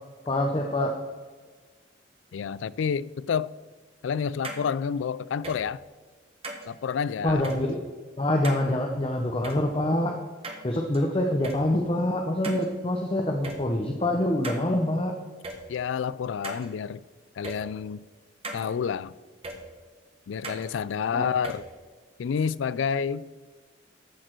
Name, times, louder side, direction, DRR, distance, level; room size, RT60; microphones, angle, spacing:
voice 1, 0.3-0.9 7.2-7.8 8.2-10.1 10.6-15.1 21.1-21.3, left 1 dB, 30° left, 3 dB, 0.7 m, -25 dB
voice 2, 2.3-3.5 4.0-5.8 6.7-7.5 15.7-17.0 17.4-18.0 18.5-19.1 20.3-21.6 22.2-23.3, left 6 dB, 80° left, 20 dB, 0.3 m, -29 dB
sound 1, 4.4-4.6 5.4-5.6 6.4-6.7 7.4-7.6 8.4-8.6 9.4-9.6 10.4-11.0 11.4-11.6 12.4-12.7 13.4-13.6 14.4-14.6 15.4-15.6 16.4-16.7 17.4-17.6 18.4-18.6 19.4-19.6 20.4-20.7 21.4-21.6, right 2 dB, 30° right, 1.3 m, -36 dB
14.0 x 6.6 x 4.5 m, 1.4 s
head